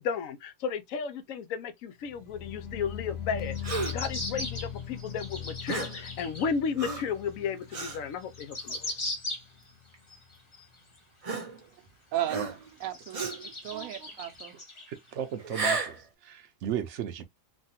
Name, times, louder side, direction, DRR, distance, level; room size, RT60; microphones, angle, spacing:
voice 1, 0.0-8.8, left 6 dB, 85° left, 1.0 m, -33 dB
sound 1, 2.0-9.1 9.4-9.9 10.2-10.3, left 8 dB, 55° left, 1.1 m, -40 dB
sound 2, 3.4-6.5 7.0-7.1 7.9-9.7 10.1-11.0 11.6-11.7 12.2-12.3 12.8-15.2 15.7-15.8, left 2 dB, 35° left, 0.5 m, -39 dB
Gasp, 3.6-4.1 5.7-6.0 6.8-7.2 7.7-8.0 8.7-8.9 9.9-10.0 11.2-11.9 12.3-12.7 13.1-13.5 15.4-16.0, right 3 dB, 35° right, 0.6 m, -33 dB
voice 2, 12.8-14.6, right 13 dB, 85° right, 1.1 m, -35 dB
voice 3, 14.9-16.0 16.2-17.2, right 9 dB, 70° right, 0.9 m, -35 dB
3.2 x 2.3 x 2.6 m
omnidirectional pair, 1.4 m